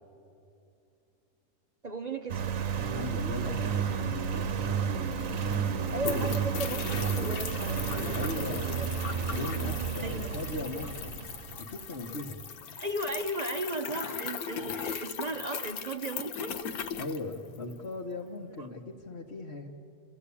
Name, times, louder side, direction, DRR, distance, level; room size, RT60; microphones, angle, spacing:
voice 1, 1.8-2.4 5.9-8.9 10.0-10.4 12.8-16.6 18.6-18.7, right 2 dB, 35° right, 6 dB, 0.7 m, -36 dB
Engine, 2.3-11.7, right 7 dB, 60° right, 1.2 m, -32 dB
voice 2, 2.9-5.2 8.1-8.7 9.2-11.3 11.6-12.4 17.0-19.7, left 2 dB, 45° left, -2 dB, 1.4 m, -39 dB
sound 1, 4.8-4.9 5.1-17.9, left 7 dB, 70° left, 1.3 m, -38 dB
29.0 x 14.5 x 8.5 m, 2.6 s
omnidirectional pair, 1.7 m